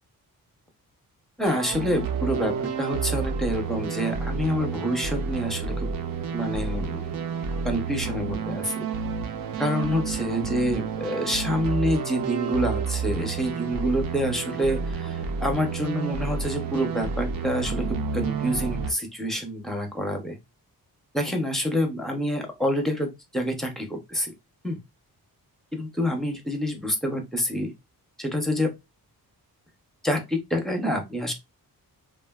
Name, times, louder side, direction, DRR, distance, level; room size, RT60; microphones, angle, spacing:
voice 1, 1.4-5.9 6.3-7.0 7.6-8.8 9.6-20.4 21.1-24.3 24.6-24.8 25.7-27.7 28.2-28.7 30.0-31.3, equal, ahead, 3 dB, 0.6 m, -27 dB
sound 1, 1.4-18.9, right 5 dB, 65° right, 0.5 m, -30 dB
3.3 x 2.1 x 2.2 m, 0.22 s
wide cardioid pair, 140°, 38 cm